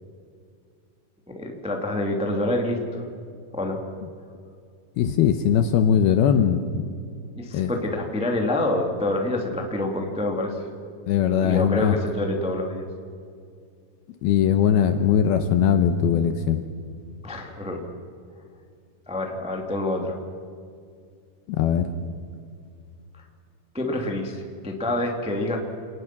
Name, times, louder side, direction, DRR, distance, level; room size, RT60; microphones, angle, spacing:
voice 1, 1.3-3.0 3.5-3.8 7.3-10.6 11.4-12.8 17.2-17.8 19.1-20.2 23.1-23.2 23.7-25.6, left 1 dB, 5° right, 2 dB, 0.7 m, -27 dB
voice 2, 5.0-6.9 7.5-7.7 11.1-12.0 14.2-16.6 21.5-21.9, left 8 dB, 75° left, 8 dB, 2.4 m, -20 dB
28.5 x 19.5 x 6.0 m, 2.3 s
omnidirectional pair, 5.3 m